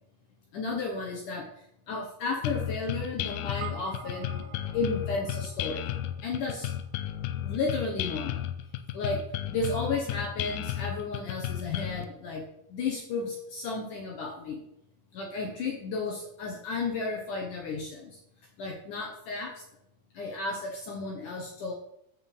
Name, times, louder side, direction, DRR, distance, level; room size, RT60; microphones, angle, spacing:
voice 1, 0.5-1.5 1.9-4.4 4.7-5.9 6.2-6.7 7.4-8.4 8.9-9.2 9.5-12.4 12.7-14.6 15.1-18.2 18.6-19.5 20.1-21.7, left 3 dB, 65° left, 0 dB, 2.1 m, -33 dB
sound 1, 2.4-12.0, left 12 dB, 85° left, 2.3 m, -33 dB
sound 2, 3.6-8.2, right 8 dB, 75° right, 2.7 m, -47 dB
8.7 x 4.5 x 7.1 m, 0.78 s
omnidirectional pair, 5.0 m